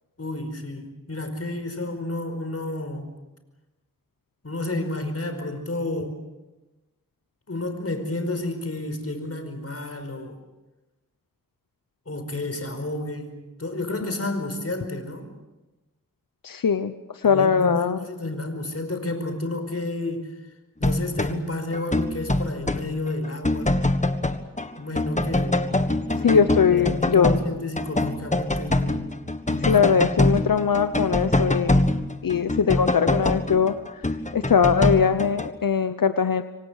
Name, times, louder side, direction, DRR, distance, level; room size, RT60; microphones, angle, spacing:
voice 1, 0.2-3.1 4.4-6.2 7.5-10.4 12.0-15.3 17.2-20.3 20.8-23.7 24.8-25.7 26.1-29.1 29.5-30.0, left 2 dB, 45° left, 7 dB, 5.1 m, -31 dB
voice 2, 16.4-18.0 26.2-27.3 29.7-31.9 32.2-36.4, left 6 dB, 85° left, 10 dB, 0.9 m, -21 dB
sound 1, 20.8-21.4 21.7-22.9 23.2-24.7 25.0-35.5, left 1 dB, 20° left, 1.6 m, -24 dB
27.0 x 24.5 x 6.5 m, 1.1 s
wide cardioid pair, 55°, 33 cm